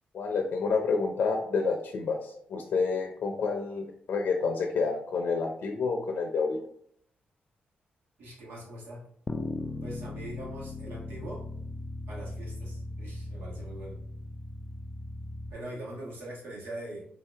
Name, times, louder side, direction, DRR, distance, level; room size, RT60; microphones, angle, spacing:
voice 1, 0.1-6.6, left 4 dB, 65° left, 2 dB, 0.6 m, -29 dB
voice 2, 8.2-9.1 9.8-11.5 12.1-14.0 15.5-17.0, right 1 dB, 90° right, -4 dB, 1.5 m, -42 dB
sound 1, 9.3-15.5, left 2 dB, 25° left, 0.3 m, -38 dB
4.0 x 2.8 x 3.3 m, 0.65 s
cardioid pair, 115°, 4 cm